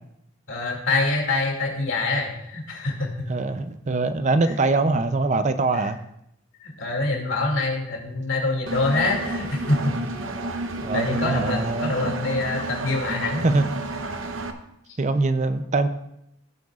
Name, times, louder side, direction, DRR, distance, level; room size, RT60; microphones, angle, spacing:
voice 1, 0.5-3.3 5.7-5.8 6.6-9.9 10.9-13.4, left 2 dB, 70° left, 0 dB, 2.4 m, -25 dB
voice 2, 3.3-6.0 10.8-12.1 13.4-13.7 15.0-15.9, right 3 dB, 35° right, 10 dB, 0.5 m, -23 dB
Engine, 8.7-14.5, right 2 dB, 75° right, 0.9 m, -31 dB
16.5 x 7.9 x 2.4 m, 0.78 s
head